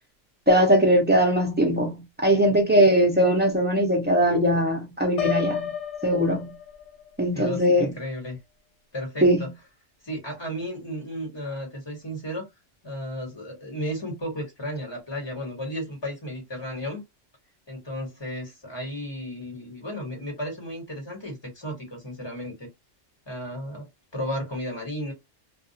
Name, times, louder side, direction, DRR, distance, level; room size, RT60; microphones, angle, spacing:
voice 1, 0.5-5.7 6.0-6.5 7.2-7.9 9.2-9.5, equal, 15° right, 0.3 m, -20 dB
Piano, 5.2-7.1, left 8 dB, 65° left, 0.9 m, -30 dB
voice 2, 7.3-8.4 8.9-9.5 10.0-12.5 12.8-17.0 17.7-22.7 23.3-25.1, equal, 20° left, 1.3 m, -34 dB
2.4 x 2.3 x 2.7 m
omnidirectional pair, 1.3 m